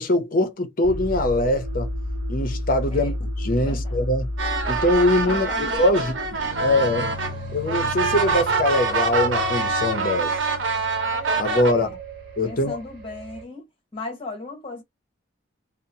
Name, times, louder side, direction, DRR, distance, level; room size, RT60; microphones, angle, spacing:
voice 1, 0.0-1.9 2.3-4.3 4.7-6.1 6.6-7.1 7.5-10.3 11.4-11.9 12.4-12.8, left 1 dB, 45° left, 0.7 m, -22 dB
sound 1, 0.8-13.4, equal, 50° right, 0.9 m, -33 dB
voice 2, 3.6-4.0 5.3-6.0 11.7-12.0 12.4-13.7 13.9-14.8, left 3 dB, 30° left, 1.1 m, -36 dB
sound 2, 4.4-11.7, right 3 dB, 75° right, 0.8 m, -25 dB
2.8 x 2.0 x 2.7 m
head